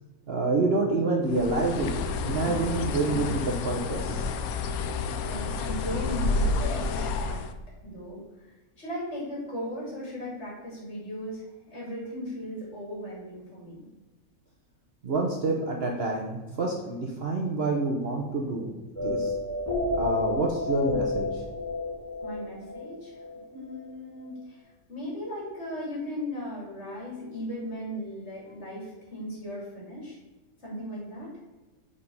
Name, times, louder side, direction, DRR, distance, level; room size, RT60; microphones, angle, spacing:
voice 1, 0.3-1.9 2.2-4.3 15.0-18.7 19.0-19.4 19.9-21.4, right 3 dB, 50° right, -1 dB, 0.9 m, -27 dB
Bird, 1.3-7.5, left 3 dB, 75° left, 1.0 m, -30 dB
voice 2, 5.0-7.4 7.8-8.5 8.8-13.9 22.2-23.2 23.5-30.1 30.6-31.3, equal, 45° left, -4 dB, 2.8 m, -37 dB
sound 1, 19.0-23.8, left 3 dB, 10° left, 1.7 m, -31 dB
5.0 x 4.9 x 5.3 m, 1.1 s
omnidirectional pair, 1.6 m